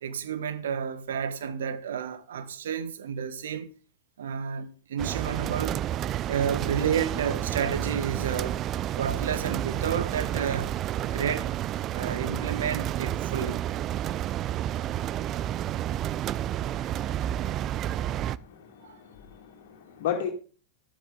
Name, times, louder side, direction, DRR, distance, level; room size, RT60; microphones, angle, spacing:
voice 1, 0.0-3.7 4.2-5.8 6.3-8.6 8.9-10.7 11.1-11.5 11.9-13.6 15.2-15.3 18.8-19.0, right 7 dB, 60° right, 1.5 m, -31 dB
sound 1, 5.0-18.4, right 11 dB, 30° right, 0.5 m, -30 dB
voice 2, 18.4-20.3, left 9 dB, 55° left, 2.6 m, -34 dB
13.0 x 12.5 x 3.9 m
figure-of-eight pair, 90°, 0 cm